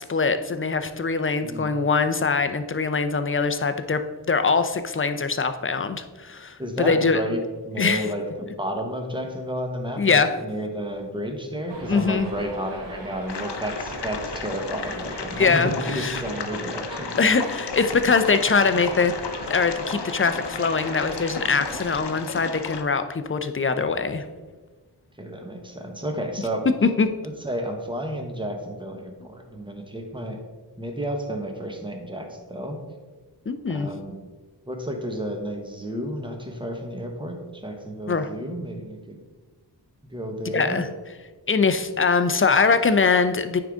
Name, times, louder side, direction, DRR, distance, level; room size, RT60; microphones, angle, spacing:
voice 1, 0.0-7.2 7.8-8.1 10.0-10.3 11.9-12.3 15.4-16.2 17.2-19.1 19.5-24.2 26.7-27.1 33.5-33.9 38.1-38.3 40.5-40.9 41.5-43.6, left 4 dB, 30° left, 9 dB, 0.5 m, -22 dB
voice 2, 6.6-17.1 25.2-26.6 27.2-30.4 30.8-32.8 33.7-34.1 34.7-39.2 40.0-40.8, equal, 10° right, 3 dB, 1.0 m, -31 dB
Subway metro underground, 11.7-22.0, right 2 dB, 80° right, 1.1 m, -38 dB
sound 1, 13.3-22.8, left 5 dB, 70° left, 0.7 m, -34 dB
9.1 x 3.8 x 3.6 m, 1.3 s
wide cardioid pair, 60°, 42 cm